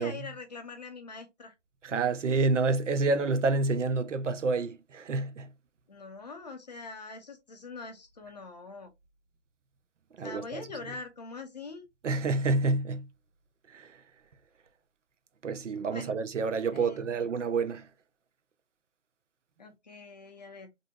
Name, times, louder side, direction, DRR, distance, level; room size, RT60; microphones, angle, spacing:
voice 1, 0.0-1.5 5.9-8.9 10.2-11.9 15.9-16.2 16.7-17.1 19.6-20.7, left 4 dB, 35° left, 0.6 m, -43 dB
voice 2, 1.8-5.5 10.2-10.6 12.0-13.0 13.7-13.9 15.4-17.8, right 3 dB, 85° right, 0.6 m, -28 dB
2.7 x 2.7 x 2.2 m
figure-of-eight pair, 155°, 36 cm